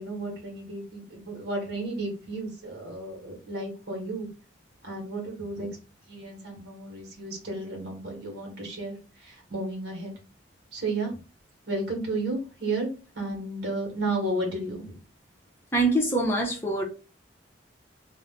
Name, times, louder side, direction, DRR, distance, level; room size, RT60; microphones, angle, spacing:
voice 1, 0.0-4.3 4.8-5.7 6.1-10.1 10.7-11.1 11.7-12.9 13.1-15.0, right 2 dB, 55° right, 1.1 m, -33 dB
voice 2, 15.7-16.8, right 2 dB, 10° left, 0.7 m, -24 dB
2.4 x 2.1 x 3.5 m
head